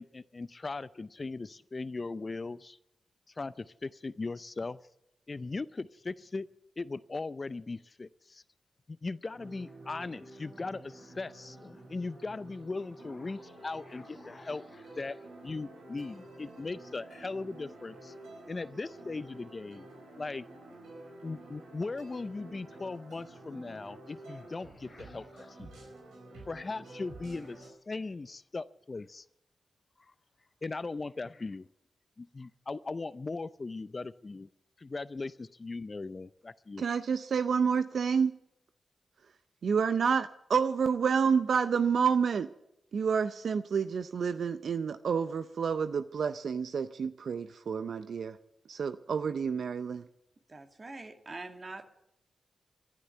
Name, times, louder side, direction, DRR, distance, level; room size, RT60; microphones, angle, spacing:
voice 1, 0.0-2.8 3.4-4.8 5.3-6.5 6.8-8.4 8.9-18.1 18.5-19.9 20.2-20.4 21.2-25.7 26.5-29.2 30.0-30.1 30.6-31.7 32.2-34.5 34.8-36.8, left 3 dB, 40° left, 16 dB, 0.5 m, -39 dB
sound 1, 9.3-27.7, right 2 dB, 90° right, 4.4 m, -50 dB
voice 2, 36.8-38.3 39.6-42.5 42.9-48.4 48.7-50.0, right 6 dB, 70° right, 12 dB, 0.5 m, -29 dB
voice 3, 50.5-51.8, right 2 dB, 45° right, 5 dB, 2.2 m, -44 dB
12.0 x 11.5 x 9.2 m, 0.80 s
supercardioid pair, 40°, 0 cm